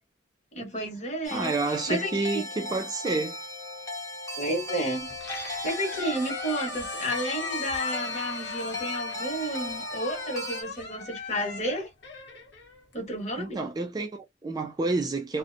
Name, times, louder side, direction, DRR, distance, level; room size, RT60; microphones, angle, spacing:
voice 1, 0.5-2.4 4.4-5.1 5.5-11.9 12.9-13.6, right 1 dB, 40° left, 1.1 m, -32 dB
sound 1, 1.2-10.6, left 2 dB, 20° left, 0.8 m, -36 dB
voice 2, 1.3-3.4 13.4-15.4, right 3 dB, 20° right, 0.3 m, -29 dB
Squeak, 5.1-13.3, left 3 dB, 60° left, 0.9 m, -39 dB
2.6 x 2.1 x 2.5 m
head